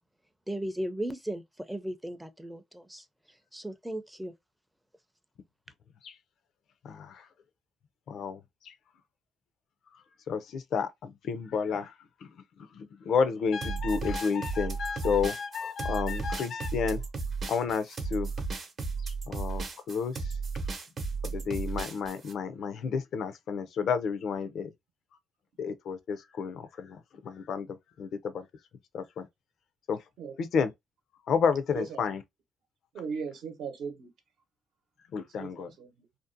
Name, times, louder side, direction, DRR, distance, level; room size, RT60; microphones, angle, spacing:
voice 1, 0.5-3.0 3.5-4.3, right 1 dB, 5° right, 0.4 m, -36 dB
voice 2, 6.8-7.3 8.1-8.7 10.3-11.9 12.2-12.3 12.6-17.0 17.5-18.3 19.0-20.4 21.2-24.7 25.6-27.7 28.0-28.5 28.9-29.3 29.9-30.0 30.4-30.7 31.3-32.2 35.1-35.7, left 6 dB, 70° left, 0.4 m, -31 dB
sound 1, 13.6-22.3, right 4 dB, 50° right, 0.7 m, -34 dB
voice 3, 31.7-32.1 32.9-34.1 35.4-36.1, right 6 dB, 75° right, 0.8 m, -38 dB
2.5 x 2.0 x 2.5 m
cardioid pair, 90°, 0 cm